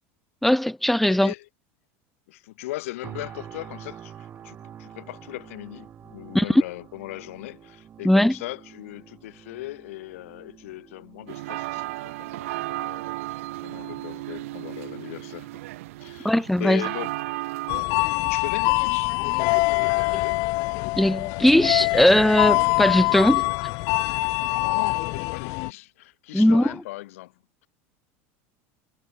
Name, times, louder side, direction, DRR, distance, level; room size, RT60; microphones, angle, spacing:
voice 1, 0.4-1.3 6.3-6.6 8.0-8.3 16.2-16.8 21.0-23.4 26.3-26.7, left 1 dB, ahead, 0.9 m, -19 dB
voice 2, 1.1-1.5 2.3-13.0 13.3-15.6 16.0-17.2 18.1-19.2 19.8-20.5 24.5-27.3, left 18 dB, 85° left, 2.9 m, -38 dB
sound 1, 3.0-18.0 18.5-18.7, right 9 dB, 25° right, 6.6 m, -48 dB
sound 2, 11.3-17.8, right 18 dB, 85° right, 2.3 m, -34 dB
sound 3, 17.7-25.7, left 29 dB, 50° left, 0.4 m, -24 dB
supercardioid pair, 150°, 7 cm